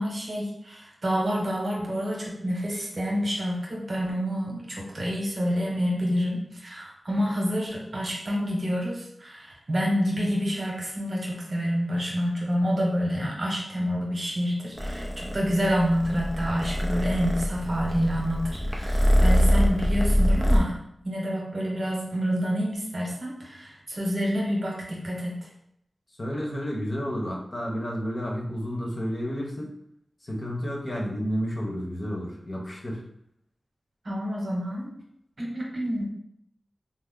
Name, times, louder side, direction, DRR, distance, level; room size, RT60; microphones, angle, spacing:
voice 1, 0.0-20.8 21.0-25.5 34.0-34.9 35.4-36.1, equal, 55° right, -2 dB, 1.0 m, -28 dB
Purr, 14.8-20.6, equal, 5° left, 0.5 m, -24 dB
voice 2, 26.2-29.7 30.2-33.0, equal, 50° left, -1 dB, 0.9 m, -31 dB
3.3 x 2.0 x 3.7 m, 0.74 s
wide cardioid pair, 65°, 0 cm